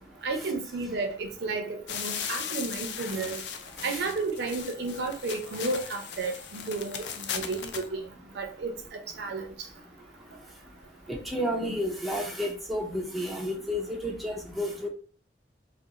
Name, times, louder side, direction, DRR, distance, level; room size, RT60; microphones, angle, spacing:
voice 1, 0.2-3.4 3.8-8.1 8.3-9.5, right 3 dB, 65° right, 0.5 m, -32 dB
sound 1, 1.9-7.9, left 7 dB, 70° left, 0.4 m, -37 dB
voice 2, 11.1-14.9, equal, ahead, 0.4 m, -31 dB
2.5 x 2.3 x 2.7 m
head